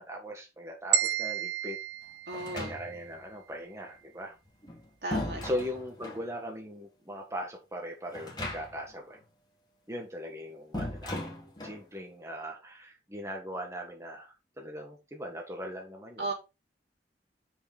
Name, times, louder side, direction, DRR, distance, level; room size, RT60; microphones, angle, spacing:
voice 1, 0.0-1.8 2.5-4.4 5.4-9.2 9.9-11.2 11.6-16.3, equal, 15° right, 1.5 m, -39 dB
sound 1, 0.9-3.1, right 8 dB, 90° right, 1.0 m, -31 dB
sound 2, 2.3-3.2 4.4-6.3 8.1-9.0 9.2-9.3 10.7-11.9, left 1 dB, 25° left, 2.4 m, -38 dB
voice 2, 2.3-2.8 5.0-5.6 16.2-16.3, right 2 dB, 70° right, 3.2 m, -35 dB
7.8 x 5.9 x 4.3 m
head